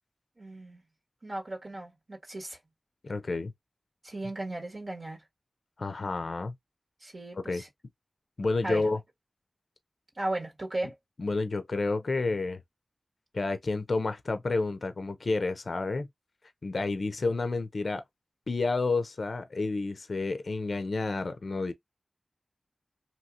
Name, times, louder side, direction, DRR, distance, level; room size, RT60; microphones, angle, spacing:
voice 1, 0.4-0.8 1.2-2.6 4.0-5.2 7.0-7.7 8.6-8.9 10.1-10.9, right 1 dB, 70° right, 1.5 m, -36 dB
voice 2, 3.0-3.5 5.8-6.5 7.5-7.6 8.4-9.0 11.2-12.6 13.3-16.1 16.6-18.0 18.5-21.7, left 3 dB, 80° left, 0.4 m, -30 dB
2.8 x 2.7 x 2.4 m
cardioid pair, 45°, 0 cm